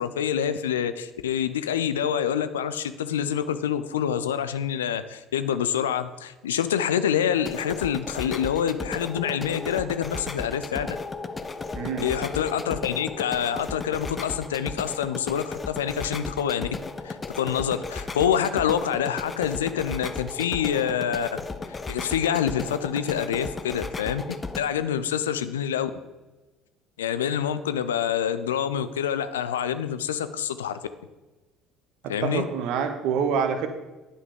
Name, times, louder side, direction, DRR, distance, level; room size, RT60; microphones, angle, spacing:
voice 1, 0.0-10.9 12.0-16.7 17.0-21.4 21.9-24.2 24.5-25.9 27.0-30.8 32.1-32.4, left 9 dB, 80° left, 12 dB, 0.4 m, -26 dB
sound 1, 7.4-24.6, left 3 dB, 25° left, 0.5 m, -35 dB
voice 2, 11.8-12.1 32.0-33.7, right 6 dB, 60° right, 8 dB, 0.8 m, -26 dB
9.6 x 5.5 x 3.7 m, 1.1 s
figure-of-eight pair, 60°, 0 cm